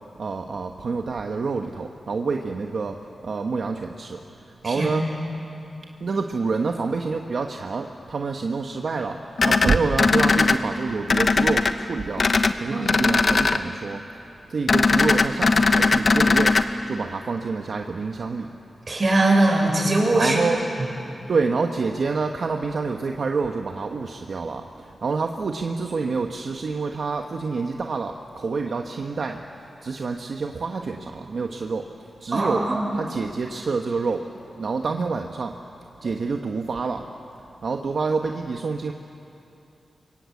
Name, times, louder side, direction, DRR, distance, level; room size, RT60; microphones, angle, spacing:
voice 1, 0.2-3.0 3.2-4.2 4.6-5.0 6.0-14.0 14.5-16.6 16.9-18.5 20.1-20.6 21.3-32.7 32.9-34.2 34.6-35.5 36.0-37.1 37.6-38.9, right 4 dB, 65° right, 3 dB, 1.2 m, -27 dB
voice 2, 4.6-5.0 12.7-13.1 18.9-20.4 32.3-32.8, right 2 dB, 40° right, 0 dB, 6.2 m, -21 dB
sound 1, 9.4-10.6 11.1-11.7 12.2-12.5 12.9-13.6 14.7-16.6, left 4 dB, 50° left, 1.0 m, -19 dB
27.5 x 23.5 x 8.4 m, 2.8 s
wide cardioid pair, 105°, 0 cm